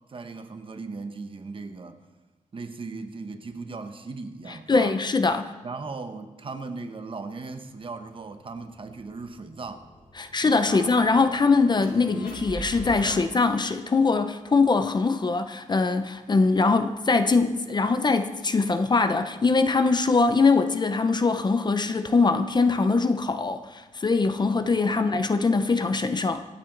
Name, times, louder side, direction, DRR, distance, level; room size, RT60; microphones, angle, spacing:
voice 1, 0.1-2.0 2.5-5.0 5.6-9.9 10.4-11.3 11.9-12.3 13.0-13.5 24.6-25.2, right 4 dB, 40° right, 0.9 m, -38 dB
voice 2, 4.7-5.5 10.2-26.5, left 4 dB, 30° left, 0.6 m, -22 dB
sound 1, 7.7-7.8 8.1-13.1, equal, 85° left, 5.7 m, -43 dB
25.5 x 8.9 x 3.9 m
wide cardioid pair, 180°, 14 cm